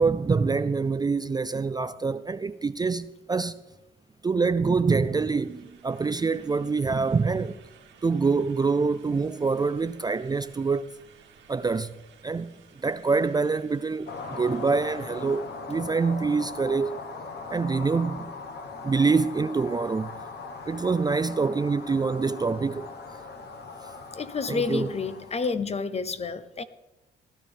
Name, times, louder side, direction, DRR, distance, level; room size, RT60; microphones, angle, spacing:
voice 1, 0.0-3.6 4.2-7.6 8.0-10.9 11.5-11.9 12.2-12.5 12.8-17.0 17.5-18.3 18.8-20.1 20.7-22.9 24.5-24.9, right 4 dB, 20° right, 0.4 m, -25 dB
sound 1, 4.8-15.6, right 7 dB, 75° right, 2.2 m, -56 dB
sound 2, 14.1-25.6, left 4 dB, 55° left, 1.4 m, -40 dB
voice 2, 24.1-26.6, left 4 dB, 30° left, 0.9 m, -29 dB
16.5 x 12.0 x 3.6 m
cardioid pair, 90°, 20 cm